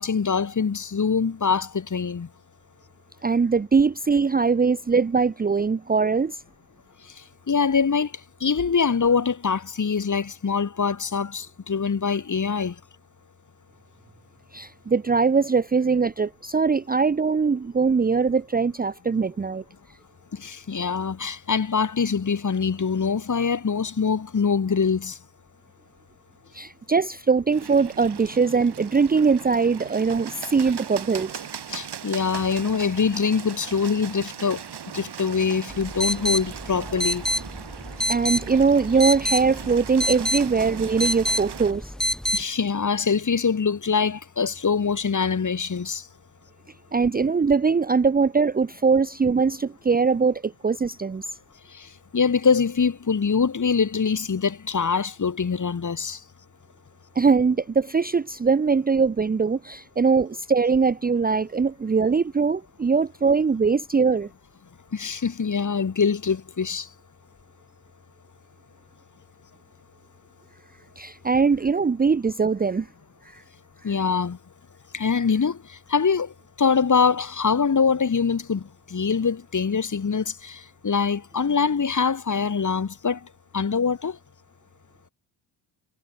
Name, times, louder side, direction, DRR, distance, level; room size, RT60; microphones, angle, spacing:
voice 1, 0.0-2.3 7.5-8.1 8.4-12.7 20.3-25.2 31.7-34.6 34.9-37.2 42.3-46.1 51.7-56.2 64.9-66.9 73.8-74.4 74.9-76.3 76.6-83.2 83.5-84.2, left 5 dB, 35° left, 4.4 m, -24 dB
voice 2, 3.2-6.4 14.5-19.6 26.5-31.3 38.1-41.9 46.9-51.2 57.2-64.3 71.0-72.9 73.3-73.4, right 5 dB, 20° right, 0.8 m, -21 dB
Bird, 27.5-41.7, right 8 dB, 55° right, 7.4 m, -39 dB
sound 1, 35.7-42.4, equal, ahead, 2.7 m, -28 dB
supercardioid pair, 65°, 48 cm